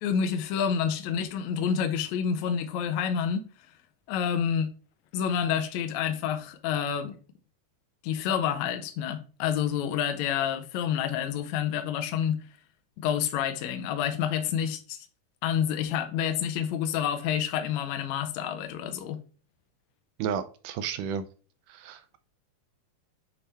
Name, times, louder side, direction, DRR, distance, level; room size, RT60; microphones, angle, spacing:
voice 1, 0.0-3.5 4.1-4.7 5.1-7.2 8.0-12.4 13.0-15.1 15.4-19.2, left 8 dB, 80° left, 1.7 m, -28 dB
voice 2, 20.2-21.2 21.7-22.2, right 7 dB, 80° right, 2.0 m, -32 dB
7.4 x 3.3 x 4.1 m
omnidirectional pair, 3.8 m